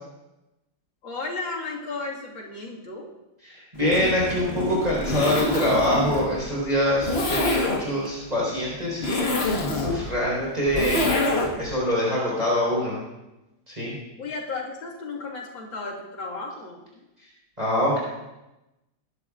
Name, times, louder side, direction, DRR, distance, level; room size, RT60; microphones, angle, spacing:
voice 1, 1.0-3.1 14.2-17.0, left 3 dB, 80° left, -3 dB, 2.7 m, -34 dB
voice 2, 3.4-11.3 11.6-12.9 13.7-14.0 17.6-18.0, left 1 dB, 20° right, -6 dB, 4.2 m, -25 dB
Zipper (clothing), 3.8-11.7, left 2 dB, 35° left, 1.4 m, -26 dB
21.0 x 11.0 x 2.5 m, 0.98 s
omnidirectional pair, 2.0 m